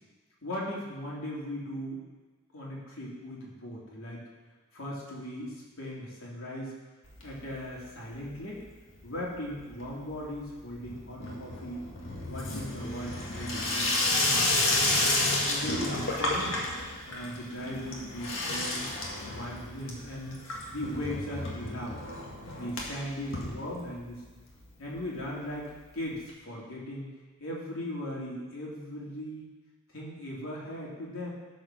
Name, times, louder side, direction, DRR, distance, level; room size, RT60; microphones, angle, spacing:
voice 1, 0.4-2.0 2.5-4.2 4.7-6.7 7.2-8.6 9.0-11.9 12.3-13.9 14.2-15.0 15.4-16.6 17.1-20.4 20.7-22.0 22.5-24.2 24.8-25.7 25.9-27.1 27.4-29.5 29.9-31.3, left 1 dB, 90° left, -4 dB, 3.0 m, -38 dB
Water tap faucet / Sink (filling or washing), 7.0-7.8 8.1-8.7 8.9-24.2 24.6-24.7 24.8-24.9 25.2-25.3 26.3-26.4, left 2 dB, 70° left, 2.0 m, -32 dB
13.0 x 4.9 x 6.3 m, 1.3 s
head